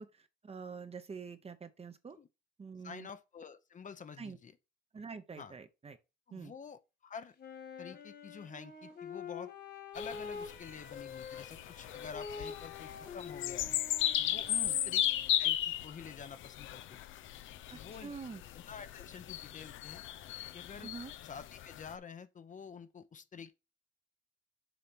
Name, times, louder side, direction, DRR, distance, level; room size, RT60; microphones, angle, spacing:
voice 1, 0.0-2.2 2.6-3.1 4.2-4.4 4.9-6.0 6.3-6.5 14.5-14.8 17.7-18.4 20.8-21.1, right 5 dB, 30° right, 0.9 m, -46 dB
voice 2, 2.8-4.5 5.4-5.6 6.3-7.4 7.8-9.5 9.9-13.8 14.2-15.0 15.4-17.0 17.7-18.1 18.5-20.0 20.5-20.9 21.2-23.5, left 6 dB, 40° left, 0.8 m, -49 dB
Wind instrument woodwind instrument, 7.4-15.4, left 5 dB, 55° left, 2.1 m, -46 dB
sound 1, 9.9-21.9, left 12 dB, 80° left, 0.6 m, -36 dB
7.0 x 3.3 x 5.3 m
cardioid pair, 90°, 20 cm